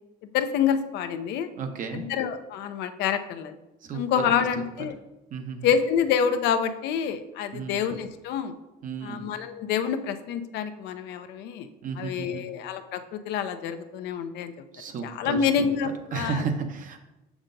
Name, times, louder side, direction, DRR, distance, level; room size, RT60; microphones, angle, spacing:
voice 1, 0.2-1.5 1.9-3.6 3.9-5.0 5.6-8.5 9.0-11.7 12.0-14.5 15.0-16.4, left 7 dB, 85° left, 9 dB, 0.5 m, -27 dB
voice 2, 1.5-2.1 3.8-4.6 5.3-5.7 7.5-7.8 8.8-9.2 11.8-12.5 14.7-15.4 15.8-17.0, right 5 dB, 50° right, 6 dB, 0.8 m, -33 dB
6.4 x 5.9 x 2.6 m, 0.98 s
cardioid pair, 110°, 17 cm